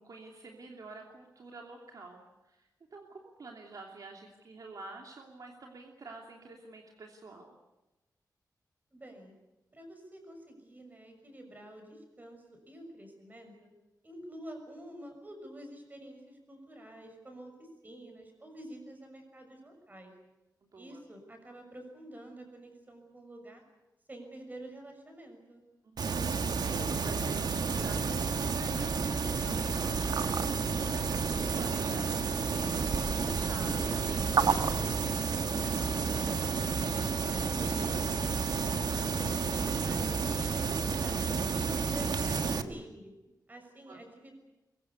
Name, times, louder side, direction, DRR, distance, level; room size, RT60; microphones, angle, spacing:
voice 1, 0.0-7.6 20.6-21.0 25.8-26.0 26.3-34.9 43.9-44.0, right 3 dB, 60° right, 1 dB, 2.9 m, -49 dB
voice 2, 8.9-9.4 9.7-13.5 14.0-20.1 20.7-23.6 24.1-25.6 36.9-43.1 43.5-44.3, right 1 dB, 25° right, 4 dB, 6.4 m, -48 dB
sound 1, 26.0-42.6, right 5 dB, 75° right, 1.4 m, -30 dB
23.0 x 23.0 x 8.3 m, 1.0 s
wide cardioid pair, 175°, 7 cm